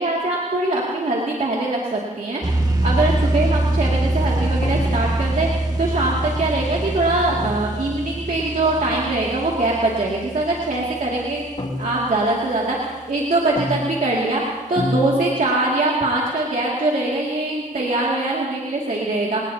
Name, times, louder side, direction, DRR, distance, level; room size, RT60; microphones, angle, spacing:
voice 1, 0.0-2.4 2.8-11.4 11.8-19.4, right 2 dB, 75° right, -4 dB, 2.5 m, -22 dB
sound 1, 2.4-11.9, right 2 dB, 25° right, 1.6 m, -24 dB
sound 2, 4.6-5.3 7.3-7.9 9.8-10.0 11.6-12.3 13.5-14.2 14.7-15.7, left 1 dB, 55° left, 3.1 m, -29 dB
26.5 x 19.0 x 2.9 m, 1.3 s
wide cardioid pair, 65°, 14 cm